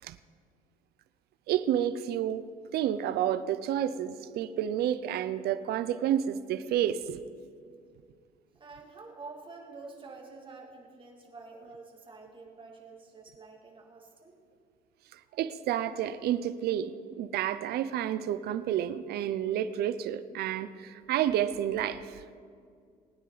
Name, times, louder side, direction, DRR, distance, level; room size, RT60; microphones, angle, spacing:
voice 1, 1.5-2.4 2.7-7.2 15.1-22.2, right 10 dB, 70° right, 13 dB, 0.6 m, -30 dB
voice 2, 8.5-14.4, right 3 dB, 30° right, 0 dB, 2.5 m, -48 dB
20.5 x 9.5 x 4.0 m, 2.2 s
cardioid pair, 110°, 17 cm